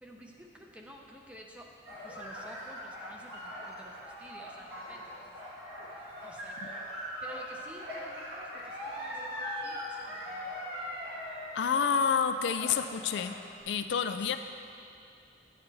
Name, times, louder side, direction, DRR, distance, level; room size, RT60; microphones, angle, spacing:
voice 1, 0.0-5.4 6.2-6.6 7.2-10.6 14.2-14.4, equal, 5° right, 0 dB, 0.7 m, -51 dB
sound 1, 1.9-13.5, equal, 60° right, 2.2 m, -41 dB
voice 2, 11.5-13.4 13.7-14.4, left 6 dB, 70° left, 9 dB, 0.3 m, -28 dB
10.0 x 8.7 x 3.4 m, 2.5 s
head